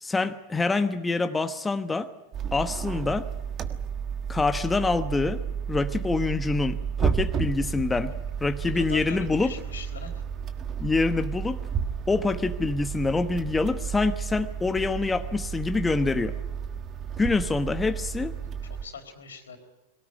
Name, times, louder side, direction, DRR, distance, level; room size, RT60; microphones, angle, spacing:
voice 1, 0.0-2.1 2.5-3.3 4.3-5.4 5.7-8.1 8.4-9.5 10.8-11.6 12.1-16.3 17.2-18.3, left 3 dB, 15° left, 9 dB, 1.0 m, -26 dB
sound 1, 2.3-18.8, right 7 dB, 35° right, 1.6 m, -32 dB
voice 2, 8.7-10.2 18.4-19.6, left 5 dB, 85° left, 5 dB, 4.0 m, -42 dB
22.0 x 18.0 x 9.8 m, 1.1 s
hypercardioid pair, 105°, 0 cm